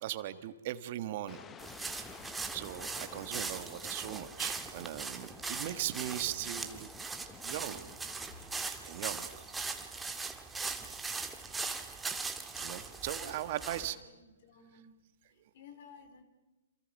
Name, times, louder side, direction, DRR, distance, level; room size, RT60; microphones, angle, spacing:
voice 1, 0.0-1.5 2.5-7.2 7.4-8.1 8.8-9.3 11.4-11.6 12.5-14.0, right 13 dB, 45° right, 11 dB, 1.5 m, -39 dB
sound 1, 1.3-9.1, left 7 dB, 15° left, 1.0 m, -53 dB
sound 2, 1.6-13.9, right 4 dB, 10° right, 1.7 m, -40 dB
voice 2, 13.1-14.9 15.5-16.2, left 5 dB, 50° left, 9 dB, 2.8 m, -56 dB
28.0 x 28.0 x 5.4 m, 1.1 s
figure-of-eight pair, 125°, 0 cm